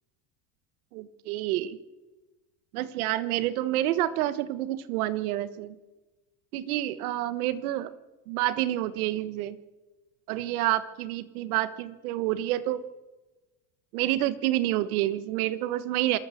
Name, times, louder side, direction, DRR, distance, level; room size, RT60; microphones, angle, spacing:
voice 1, 0.9-1.8 2.7-5.7 6.5-7.9 8.3-9.6 10.3-12.8 13.9-16.2, right 14 dB, 80° right, 13 dB, 1.4 m, -28 dB
27.0 x 12.5 x 7.8 m, 1.2 s
supercardioid pair, 100°, 43 cm